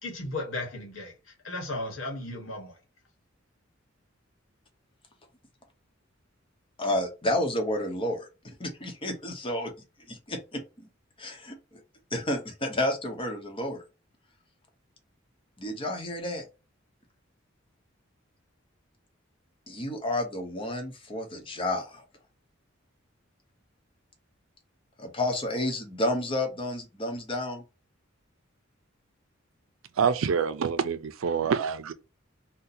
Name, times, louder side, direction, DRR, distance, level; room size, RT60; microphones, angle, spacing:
voice 1, 0.0-2.8, left 2 dB, 75° left, 1.2 m, -35 dB
voice 2, 6.8-8.3 8.6-9.7 10.1-10.9 11.2-11.6 12.1-13.8 15.6-16.5 19.7-22.0 25.0-27.6, left 1 dB, 25° left, 0.8 m, -30 dB
voice 3, 30.0-31.9, right 6 dB, 90° right, 0.4 m, -26 dB
2.7 x 2.1 x 4.0 m
head